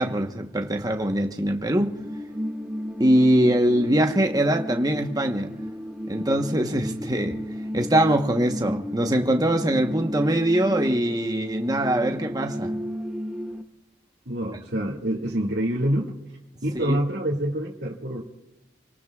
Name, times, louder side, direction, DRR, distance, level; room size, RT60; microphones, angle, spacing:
voice 1, 0.0-1.9 3.0-5.5 6.1-7.4 7.7-12.7 16.7-17.0, right 1 dB, 20° right, 1.1 m, -22 dB
sound 1, 1.7-13.6, equal, 5° right, 1.3 m, -33 dB
voice 2, 14.3-16.1 16.6-18.2, equal, 70° right, 2.1 m, -26 dB
28.0 x 18.5 x 2.4 m
head